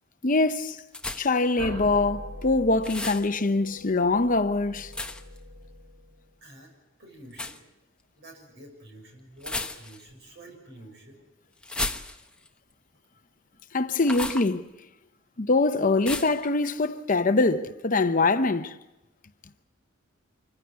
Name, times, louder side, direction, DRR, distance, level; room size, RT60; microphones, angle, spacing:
voice 1, 0.2-0.8 1.2-4.9 13.7-14.6 15.4-18.7, left 3 dB, 40° left, 0.8 m, -23 dB
sound 1, 0.9-1.5 2.8-3.3 4.9-5.4 7.3-7.6 9.4-10.1 11.6-12.5 14.0-14.5 16.0-16.4, left 2 dB, 5° left, 1.0 m, -33 dB
sound 2, 1.6-6.3, left 1 dB, 70° right, 4.6 m, -42 dB
voice 2, 6.4-6.7 7.0-7.6 8.2-11.2, right 1 dB, 55° right, 6.7 m, -48 dB
26.0 x 16.0 x 9.3 m
head